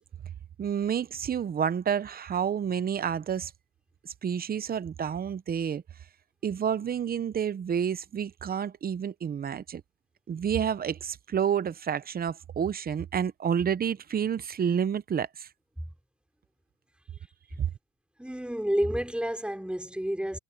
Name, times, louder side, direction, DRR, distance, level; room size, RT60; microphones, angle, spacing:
voice 1, 0.6-3.5 4.0-5.8 6.4-9.8 10.3-15.5 17.6-17.7, right 8 dB, 20° right, 0.7 m, -29 dB
voice 2, 18.2-20.4, equal, ahead, 4.9 m, -30 dB
supercardioid pair, 130°, 48 cm